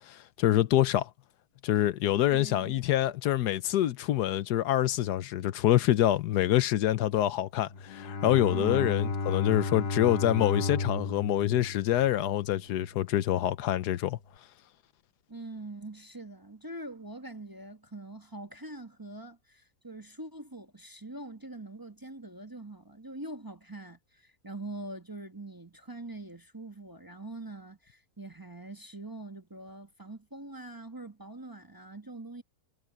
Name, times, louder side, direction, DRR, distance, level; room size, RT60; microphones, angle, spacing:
voice 1, 0.1-1.1 1.6-14.2, left 13 dB, 85° left, 1.3 m, -26 dB
voice 2, 2.3-2.8 8.5-9.0 15.3-32.4, right 2 dB, 15° right, 1.0 m, -43 dB
Bowed string instrument, 7.6-12.9, left 3 dB, 45° left, 1.2 m, -33 dB
omnidirectional pair, 1.7 m